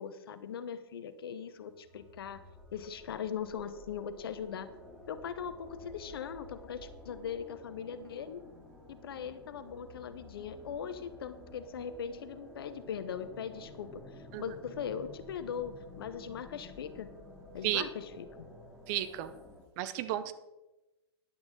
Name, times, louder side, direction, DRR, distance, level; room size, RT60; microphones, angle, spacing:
voice 1, 0.0-2.4 2.7-4.7 5.1-8.5 8.9-17.1 17.5-18.5, left 7 dB, 65° left, 12 dB, 0.9 m, -40 dB
sound 1, 1.6-19.6, left 2 dB, 5° right, 2.5 m, -52 dB
voice 2, 18.9-19.3 19.8-20.3, right 13 dB, 40° right, 12 dB, 0.7 m, -32 dB
10.5 x 8.8 x 3.9 m, 1.0 s
figure-of-eight pair, 110°, 14 cm